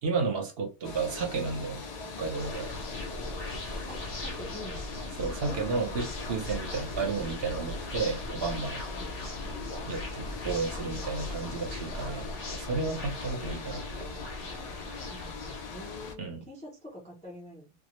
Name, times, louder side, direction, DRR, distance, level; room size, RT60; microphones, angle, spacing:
voice 1, 0.0-1.9 2.2-2.7 5.1-8.8 9.9-14.2 16.2-16.4, right 4 dB, 60° right, 0.8 m, -32 dB
sound 1, 0.8-16.1, left 4 dB, 70° left, 0.3 m, -42 dB
sound 2, 2.3-15.6, left 2 dB, 50° left, 0.9 m, -39 dB
voice 2, 3.9-4.9 5.4-5.8 8.9-9.1 14.4-17.7, left 1 dB, 10° left, 0.4 m, -45 dB
2.2 x 2.0 x 2.9 m
omnidirectional pair, 1.2 m